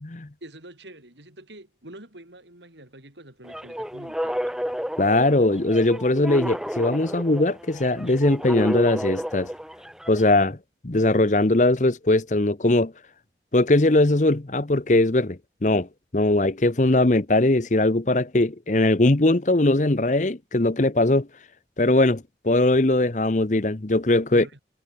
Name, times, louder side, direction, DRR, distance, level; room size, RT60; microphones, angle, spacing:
voice 1, 0.4-4.5 16.8-17.0 24.3-24.6, right 1 dB, 85° right, 7.4 m, -45 dB
sound 1, 3.4-10.3, equal, 5° right, 6.4 m, -32 dB
voice 2, 5.0-9.5 10.1-10.6 10.8-12.9 13.5-15.9 16.1-21.3 21.8-24.4, left 2 dB, 45° left, 0.9 m, -20 dB
head